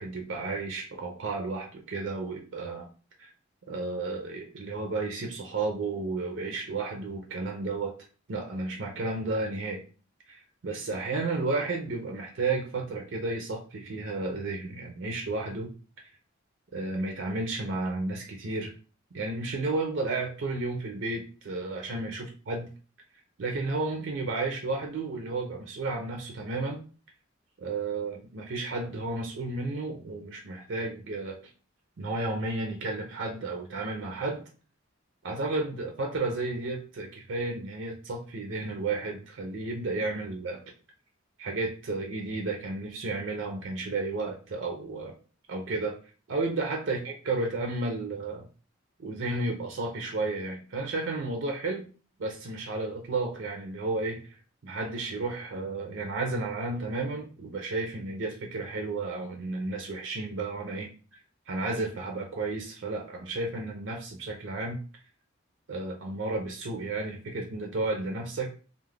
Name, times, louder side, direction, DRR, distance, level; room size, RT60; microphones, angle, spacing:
voice 1, 0.0-2.9 3.2-3.3 3.7-7.9 8.3-9.8 10.3-15.7 16.7-18.7 19.1-22.7 23.4-26.8 27.6-31.4 32.0-34.4 35.2-40.6 41.4-45.2 45.5-46.0 46.3-48.5 49.0-51.9 52.2-54.2 54.6-60.9 61.5-64.8 65.7-68.5, right 3 dB, 70° right, 2 dB, 0.5 m, -32 dB
2.4 x 2.0 x 3.2 m, 0.37 s
head